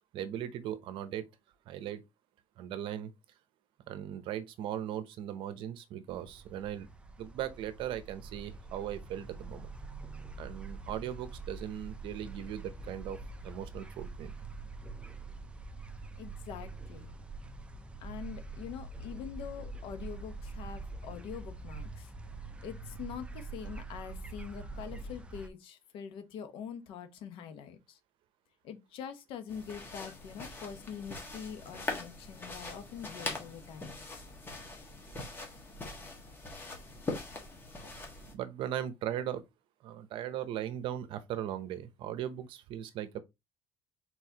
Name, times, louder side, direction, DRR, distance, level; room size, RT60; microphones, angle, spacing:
voice 1, 0.1-1.2 1.7-2.0 2.6-3.1 3.9-6.9 7.2-9.7 10.4-13.2 13.4-14.3 38.3-39.4 39.8-43.2, right 11 dB, 65° right, 0.7 m, -38 dB
sound 1, 6.1-25.5, right 3 dB, 10° right, 0.6 m, -45 dB
voice 2, 16.2-17.1 18.0-22.1 22.6-28.0 28.6-34.1, left 8 dB, 75° left, 1.0 m, -44 dB
sound 2, 29.5-38.3, left 2 dB, 25° left, 1.5 m, -42 dB
4.6 x 4.0 x 2.8 m
cardioid pair, 125°, 9 cm